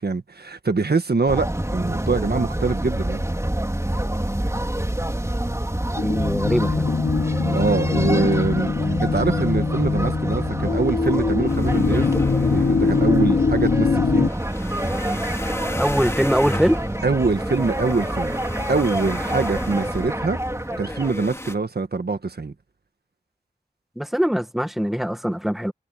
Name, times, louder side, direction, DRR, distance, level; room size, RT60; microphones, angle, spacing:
voice 1, 0.0-3.2 7.3-12.1 12.5-14.3 17.0-18.3 18.7-20.4 20.8-22.5, right 4 dB, 75° right, 1.7 m, -24 dB
sound 1, 1.3-21.1, right 1 dB, 20° right, 3.8 m, -27 dB
sound 2, 6.0-14.3, left 4 dB, 80° left, 1.1 m, -22 dB
voice 2, 6.0-6.9 15.8-16.8 24.0-25.7, equal, ahead, 1.3 m, -22 dB
sound 3, 11.5-21.6, left 1 dB, 15° left, 2.2 m, -35 dB
wide cardioid pair, 65°, 17 cm